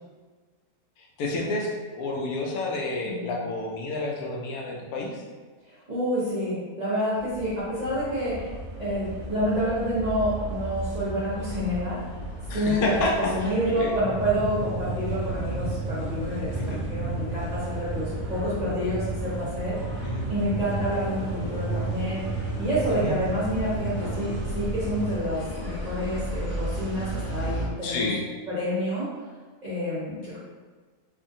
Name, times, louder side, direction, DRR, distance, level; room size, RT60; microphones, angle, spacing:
voice 1, 1.2-5.2 12.5-13.5 13.8-13.9 16.6-16.8 20.0-20.2 22.9-23.1 27.8-28.2, left 2 dB, 75° left, -1 dB, 1.0 m, -29 dB
voice 2, 5.6-12.0 12.5-19.9 20.3-28.1 28.5-29.1 29.6-30.4, equal, 35° right, -11 dB, 0.7 m, -28 dB
sound 1, 7.2-25.2, right 3 dB, 75° right, 1.0 m, -34 dB
sound 2, 8.2-27.7, equal, 45° left, 0.8 m, -36 dB
2.7 x 2.5 x 2.6 m, 1.4 s
omnidirectional pair, 1.6 m